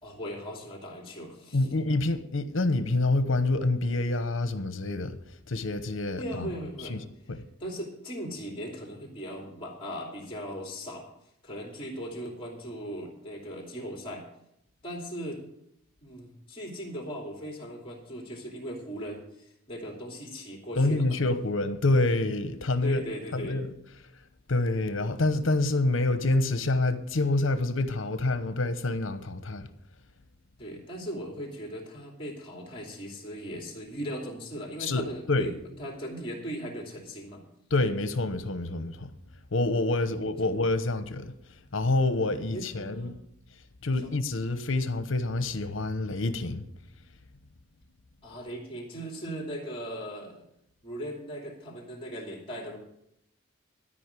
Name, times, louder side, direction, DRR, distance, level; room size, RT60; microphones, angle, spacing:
voice 1, 0.0-1.8 6.2-7.0 7.6-11.1 11.4-14.3 14.8-15.4 16.0-21.2 22.8-23.6 30.6-37.4 39.9-40.5 42.5-43.1 44.0-44.1 48.2-50.4 50.8-52.8, equal, 25° left, 2.8 m, -38 dB
voice 2, 1.5-5.2 5.5-6.5 6.9-7.0 7.3-7.4 20.8-23.0 23.3-23.7 24.5-29.7 34.8-35.5 37.7-39.1 39.5-41.4 41.7-43.2 43.8-46.6, left 2 dB, 70° left, 1.0 m, -27 dB
12.5 x 5.3 x 8.3 m
head